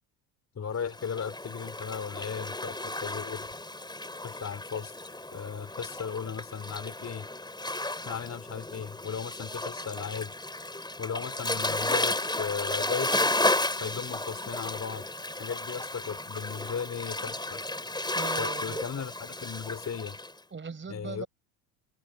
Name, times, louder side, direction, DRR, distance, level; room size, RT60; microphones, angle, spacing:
voice 1, 0.5-3.5 4.2-7.3 7.8-10.3 11.0-13.1 13.8-15.1 15.3-17.6 18.4-20.2 20.9-21.3, left 7 dB, 30° left, 4.0 m, -36 dB
Waves surf, 0.9-20.3, left 2 dB, 10° left, 5.6 m, -33 dB
voice 2, 18.1-18.8 20.5-21.3, right 5 dB, 25° right, 4.5 m, -39 dB
hypercardioid pair, 70°, 49 cm